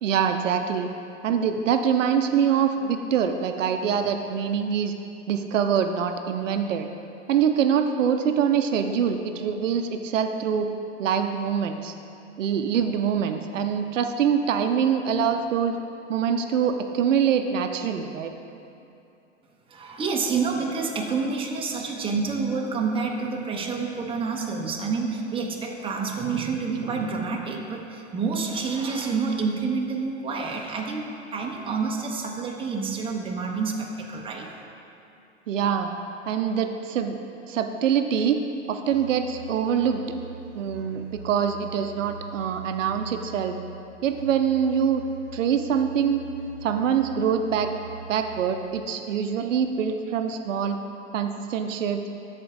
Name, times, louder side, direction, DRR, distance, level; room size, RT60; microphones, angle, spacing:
voice 1, 0.0-0.9 1.2-4.9 5.3-6.9 7.3-10.7 11.0-11.9 12.4-15.8 16.1-18.3 35.5-35.9 36.3-37.2 37.5-38.4 38.7-40.0 40.5-43.6 44.0-45.0 45.3-46.2 46.6-47.7 48.1-50.8 51.1-52.0, right 7 dB, 85° right, 7 dB, 0.6 m, -24 dB
voice 2, 19.7-34.5, right 4 dB, 15° right, 0 dB, 0.9 m, -28 dB
Musical instrument, 38.9-48.8, right 5 dB, 50° right, 1.0 m, -42 dB
13.0 x 4.4 x 3.8 m, 2.7 s
hypercardioid pair, 115°, 37 cm